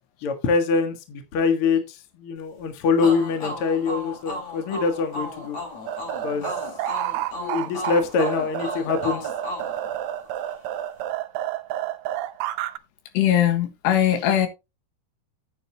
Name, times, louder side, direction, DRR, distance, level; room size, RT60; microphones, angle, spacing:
voice 1, 0.2-5.6 6.2-6.5 7.4-9.3, left 5 dB, 55° left, 1.5 m, -24 dB
sound 1, 3.0-10.6, left 1 dB, 40° left, 5.0 m, -35 dB
Synth ambiance, 5.9-12.8, right 12 dB, 85° right, 2.0 m, -30 dB
voice 2, 13.2-14.5, left 11 dB, 80° left, 3.5 m, -20 dB
9.3 x 9.0 x 2.8 m
omnidirectional pair, 4.9 m